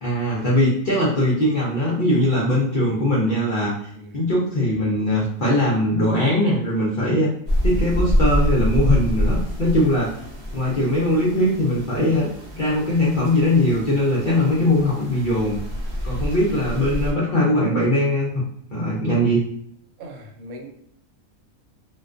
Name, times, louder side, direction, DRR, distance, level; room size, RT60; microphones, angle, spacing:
voice 1, 0.0-7.3 7.6-10.1 10.5-12.3 12.5-15.6 16.0-18.4 18.7-19.4, left 1 dB, 60° left, -6 dB, 0.5 m, -20 dB
voice 2, 3.9-4.3 20.0-20.7, right 1 dB, 80° right, 3 dB, 1.0 m, -39 dB
sound 1, 7.5-17.1, equal, 55° right, 0.7 m, -26 dB
2.4 x 2.2 x 2.4 m, 0.67 s
omnidirectional pair, 1.4 m